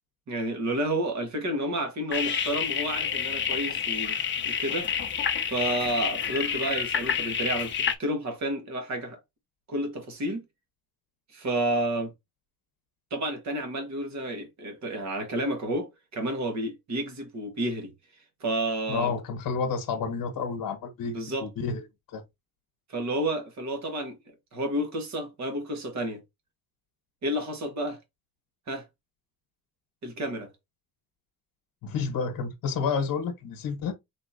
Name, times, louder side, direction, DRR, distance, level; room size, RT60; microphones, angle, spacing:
voice 1, 0.3-4.2 4.4-4.9 5.4-7.7 8.0-9.2 9.7-10.4 11.3-12.1 13.1-17.9 18.4-19.1 21.0-21.5 22.9-24.2 24.5-26.2 27.2-28.0 28.7-28.8 30.0-30.5, right 1 dB, 45° right, 1.7 m, -30 dB
sound 1, 2.1-7.9, left 7 dB, 30° left, 0.8 m, -29 dB
voice 2, 18.9-21.8 22.1-22.2 31.8-33.9, left 5 dB, 65° left, 1.3 m, -30 dB
4.4 x 4.3 x 2.7 m
cardioid pair, 125°, 38 cm